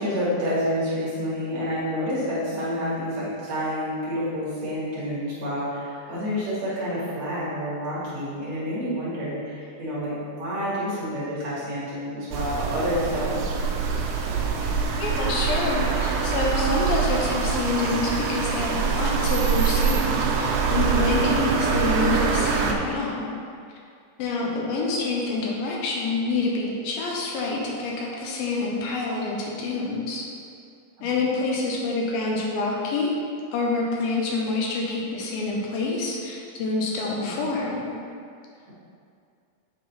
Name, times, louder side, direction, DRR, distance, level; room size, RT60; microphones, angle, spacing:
voice 1, 0.0-13.4 24.4-24.5 31.0-31.4 37.2-37.4 38.7-38.8, equal, 50° right, -10 dB, 2.3 m, -29 dB
sound 1, 12.3-22.7, right 5 dB, 85° right, 2.1 m, -24 dB
voice 2, 15.0-23.3 24.2-30.2 31.0-33.1 33.5-37.9, left 3 dB, 75° left, -2 dB, 2.2 m, -27 dB
9.1 x 3.8 x 4.2 m, 2.4 s
omnidirectional pair, 5.1 m